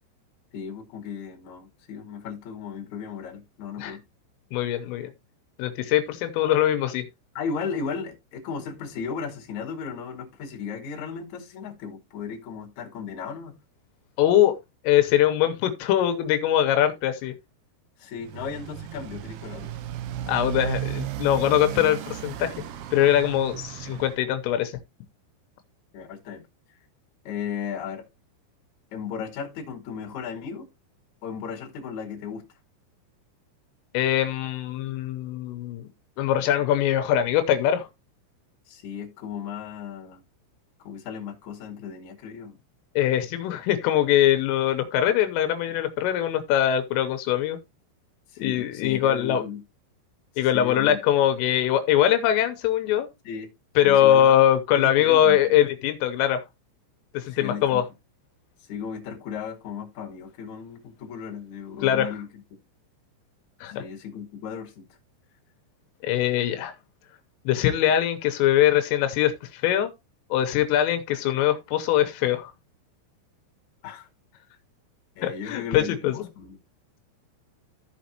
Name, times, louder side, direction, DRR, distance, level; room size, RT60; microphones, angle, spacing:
voice 1, 0.5-4.0 7.3-13.6 18.0-19.7 25.9-26.5 27.2-28.1 28.9-30.7 31.2-32.4 38.7-40.2 40.8-42.6 48.3-49.6 50.3-51.0 53.2-53.5 53.8-54.4 54.7-55.4 57.3-57.8 58.7-62.3 63.8-64.8 73.8-74.1 75.2-76.6, left 6 dB, 50° left, 2.7 m, -35 dB
voice 2, 4.5-5.1 5.6-7.0 14.2-14.6 14.8-17.3 20.3-22.5 22.9-24.8 33.9-35.9 36.2-37.9 43.0-47.6 48.4-49.4 50.4-53.1 53.8-56.4 57.1-57.8 61.8-62.2 63.6-63.8 66.0-66.7 67.5-69.9 70.3-72.5 75.2-76.3, left 11 dB, 85° left, 3.4 m, -22 dB
Motorcycle, 18.2-24.2, right 13 dB, 80° right, 2.3 m, -34 dB
14.0 x 5.2 x 2.9 m
omnidirectional pair, 5.9 m